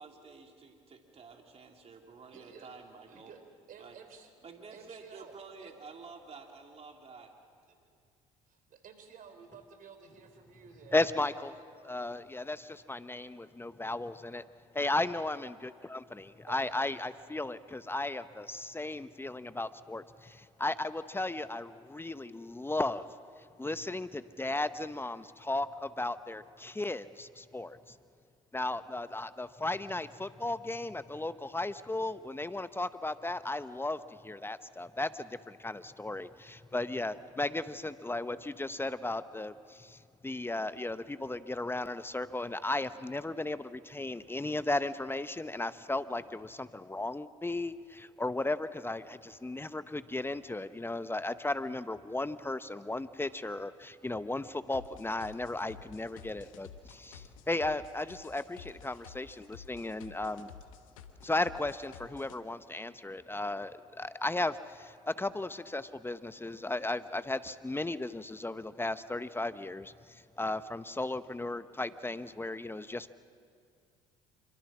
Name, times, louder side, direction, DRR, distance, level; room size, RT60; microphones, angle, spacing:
voice 1, 0.0-3.3 3.8-4.0 4.4-7.3, right 4 dB, 40° right, 2 dB, 2.9 m, -50 dB
voice 2, 2.3-2.7 3.1-4.3 4.7-5.7 7.7-7.9 8.5-11.6 16.5-16.8, right 6 dB, 55° right, 7 dB, 3.9 m, -53 dB
voice 3, 10.9-11.5 11.8-14.4 14.7-23.0 23.6-28.0 28.5-60.5 61.2-73.1, left 2 dB, 15° left, 13 dB, 0.9 m, -35 dB
sound 1, 54.7-62.4, left 8 dB, 80° left, 1.3 m, -52 dB
27.0 x 25.0 x 6.2 m, 2.3 s
hypercardioid pair, 60°, 17 cm